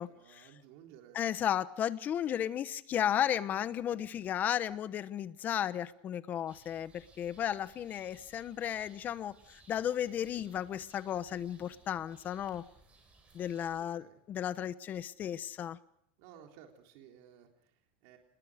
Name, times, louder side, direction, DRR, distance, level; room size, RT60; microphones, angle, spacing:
voice 1, 0.0-1.3 13.8-14.2 16.2-18.2, right 9 dB, 65° right, 3 dB, 3.8 m, -57 dB
voice 2, 1.1-12.6 13.3-15.8, left 10 dB, 30° left, 15 dB, 1.1 m, -34 dB
sound 1, 6.5-13.8, right 3 dB, 20° right, 6.3 m, -62 dB
28.0 x 21.0 x 5.0 m, 0.72 s
supercardioid pair, 145°, 6 cm